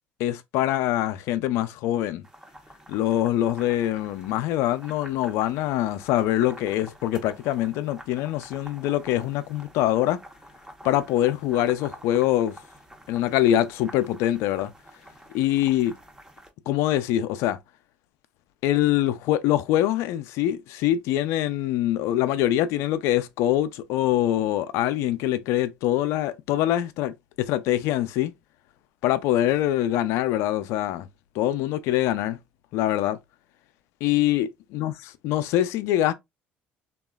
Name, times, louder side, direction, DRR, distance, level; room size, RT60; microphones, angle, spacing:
voice 1, 0.2-2.2 2.9-10.2 10.8-12.6 13.1-14.7 15.3-15.9 16.7-17.6 18.6-28.3 29.0-31.1 31.4-32.4 32.7-33.2 34.0-34.9 35.2-36.1, left 13 dB, 75° left, 0.4 m, -24 dB
sound 1, 2.2-16.5, equal, 10° right, 0.7 m, -48 dB
2.9 x 2.3 x 2.2 m
supercardioid pair, 85°, 5 cm